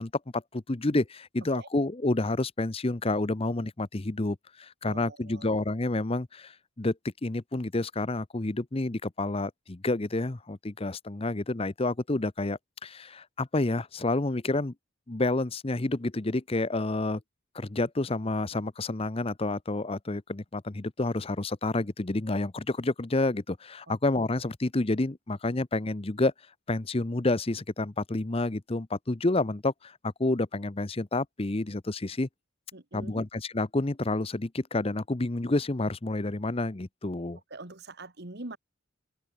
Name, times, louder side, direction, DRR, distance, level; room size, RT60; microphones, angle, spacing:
voice 1, 0.0-7.0 7.2-14.7 15.1-17.2 17.5-26.3 26.7-32.3 32.9-37.4, left 2 dB, 30° left, 0.8 m, -29 dB
voice 2, 4.8-5.5 23.9-24.0 32.7-33.2 37.5-38.6, right 2 dB, 55° right, 2.0 m, -43 dB
head